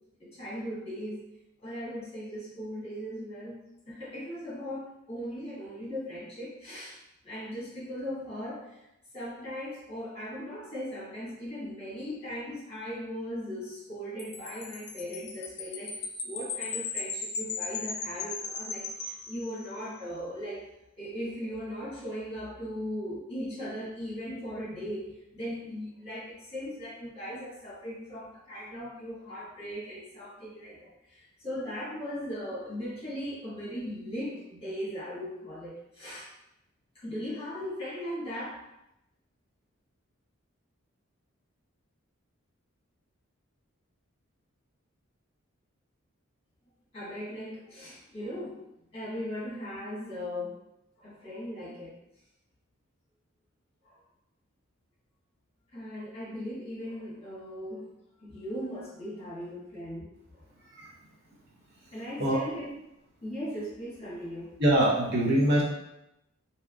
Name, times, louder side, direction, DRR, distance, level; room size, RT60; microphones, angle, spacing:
voice 1, 0.2-1.2 1.6-3.6 3.8-7.0 7.2-8.8 9.1-20.6 21.0-36.3 36.9-38.7 46.9-48.7 48.9-50.5 51.0-52.0 53.8-54.0 55.7-57.9 58.2-60.4 61.9-62.7 63.2-64.5, equal, 30° left, -8 dB, 1.4 m, -38 dB
Wind chime, 14.2-19.9, left 5 dB, 50° left, 0.4 m, -37 dB
voice 2, 64.6-65.6, right 1 dB, 50° right, -4 dB, 0.7 m, -23 dB
3.4 x 2.8 x 2.4 m, 0.85 s
head